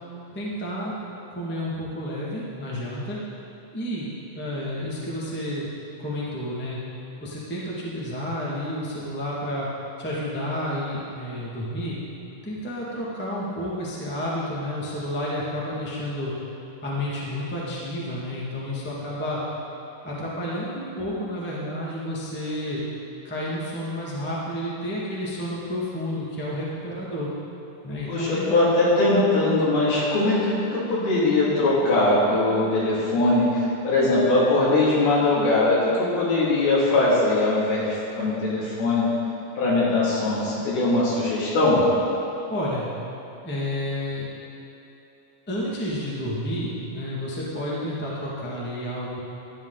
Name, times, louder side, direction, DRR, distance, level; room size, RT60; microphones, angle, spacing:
voice 1, 0.3-0.9 1.3-3.2 3.7-4.1 4.3-5.7 6.0-6.8 7.2-9.7 10.0-12.0 12.4-16.3 16.8-19.4 20.0-22.8 23.2-27.3 27.8-28.6 42.5-42.9 43.4-44.3 45.5-49.2, left 1 dB, 10° left, -6 dB, 0.4 m, -30 dB
voice 2, 28.1-39.1 39.6-41.8, left 2 dB, 90° left, -8 dB, 4.5 m, -21 dB
12.5 x 10.5 x 4.0 m, 3.0 s
omnidirectional pair, 4.2 m